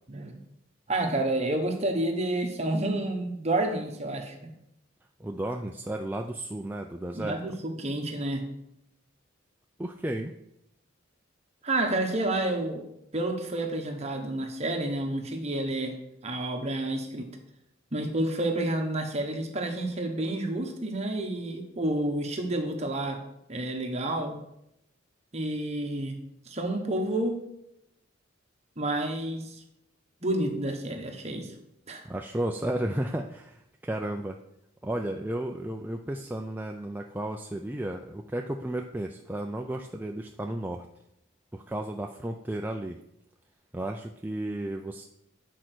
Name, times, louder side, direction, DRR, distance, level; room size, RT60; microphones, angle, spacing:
voice 1, 0.1-0.4 0.9-4.5 7.1-8.4 11.6-12.9 13.1-16.0 16.2-17.3 17.9-23.2 23.5-24.4 25.3-26.2 26.5-27.4 28.8-29.5 30.2-31.5 31.9-32.1, right 1 dB, 35° right, 4 dB, 1.2 m, -29 dB
voice 2, 5.2-7.4 9.8-10.3 32.0-34.4 34.8-40.9 41.5-43.0 43.7-45.0, right 1 dB, 10° right, 2 dB, 0.4 m, -33 dB
8.7 x 4.5 x 6.1 m, 0.79 s
head